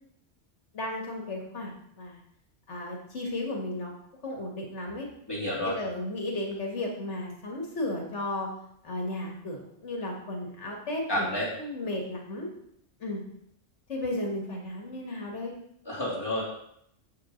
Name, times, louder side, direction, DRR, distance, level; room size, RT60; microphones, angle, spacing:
voice 1, 0.7-2.2 2.7-3.9 4.2-5.1 5.6-8.5 8.8-11.3 11.6-12.5 13.0-13.2 13.9-15.5, left 1 dB, 75° left, 0 dB, 1.9 m, -34 dB
voice 2, 5.3-5.8 11.1-11.5 15.8-16.4, left 1 dB, 20° left, -6 dB, 3.1 m, -29 dB
7.4 x 6.7 x 5.1 m, 0.73 s
omnidirectional pair, 1.2 m